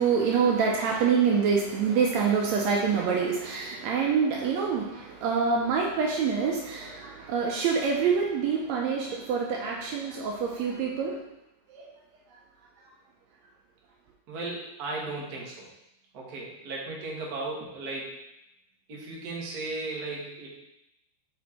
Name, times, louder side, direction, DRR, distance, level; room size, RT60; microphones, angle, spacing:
voice 1, 0.0-11.2 11.7-11.9, right 6 dB, 75° right, 0 dB, 1.8 m, -26 dB
voice 2, 14.3-15.7 16.1-18.1 18.9-20.6, right 2 dB, 50° right, -3 dB, 1.2 m, -36 dB
5.1 x 4.6 x 4.2 m, 0.87 s
omnidirectional pair, 3.4 m